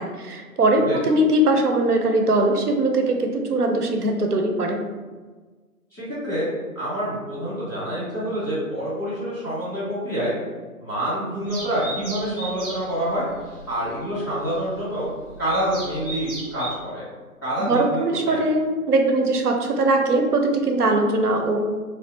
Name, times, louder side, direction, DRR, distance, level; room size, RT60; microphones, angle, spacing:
voice 1, 0.0-4.8 17.7-21.6, right 2 dB, 90° right, 3 dB, 0.7 m, -21 dB
voice 2, 5.9-6.5 6.7-10.3 10.8-13.3 13.7-15.1 15.4-17.0 17.4-18.0 18.3-18.4, equal, 5° left, -20 dB, 1.2 m, -27 dB
sound 1, 11.4-16.7, right 2 dB, 35° right, 1.2 m, -37 dB
3.3 x 2.4 x 2.7 m, 1.4 s
figure-of-eight pair, 160°, 45 cm